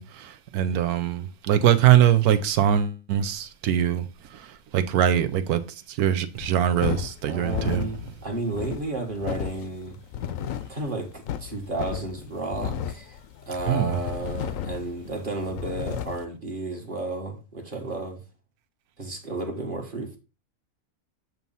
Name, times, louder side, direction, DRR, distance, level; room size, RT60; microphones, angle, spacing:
voice 1, 0.0-4.0 4.3-7.9 13.7-13.9, right 10 dB, 90° right, 1.2 m, -22 dB
sound 1, 6.3-16.3, left 10 dB, 70° left, 0.9 m, -34 dB
voice 2, 7.2-10.0 10.7-13.2 13.5-18.2 19.0-20.2, right 2 dB, 35° right, 1.4 m, -32 dB
8.2 x 3.1 x 5.4 m
omnidirectional pair, 1.5 m